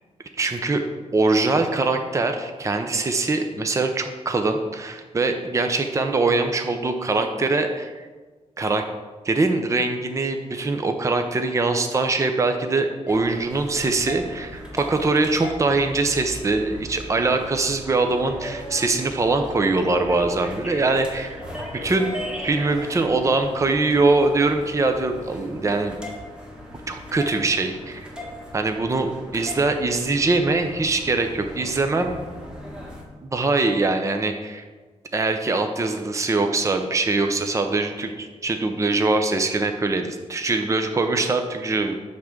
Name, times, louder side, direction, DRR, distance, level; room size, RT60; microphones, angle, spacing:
voice 1, 0.4-0.8 1.1-8.1 8.6-8.8 9.2-22.1 22.4-26.0 26.9-28.0 28.5-32.1 33.2-34.7 35.1-41.9, right 3 dB, 25° right, 6 dB, 0.6 m, -23 dB
sound 1, 13.1-33.0, left 1 dB, 5° right, 1.8 m, -38 dB
9.5 x 3.6 x 6.5 m, 1.4 s
cardioid pair, 100°, 13 cm